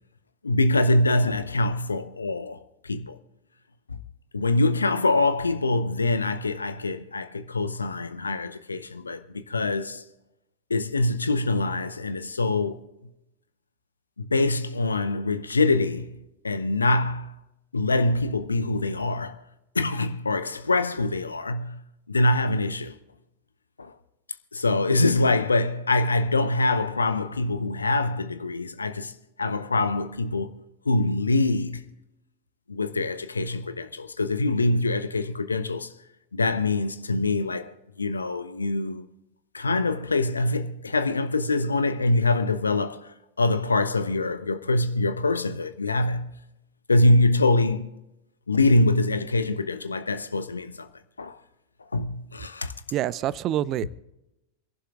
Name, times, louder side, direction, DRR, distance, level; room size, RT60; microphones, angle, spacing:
voice 1, 0.4-3.1 4.3-10.0 10.7-12.8 14.2-17.4 17.7-19.4 19.7-23.0 23.8-23.9 24.5-29.1 29.4-30.6 30.9-31.8 32.7-35.9 36.3-37.7 38.0-39.0 39.5-46.4 46.9-47.9 48.5-50.9 51.2-51.3 51.9-52.7 53.8-53.9, left 2 dB, 75° left, 0.8 m, -24 dB
voice 2, 52.9-53.9, right 12 dB, 35° right, 0.5 m, -26 dB
28.0 x 11.5 x 2.5 m
figure-of-eight pair, 90°, 0 cm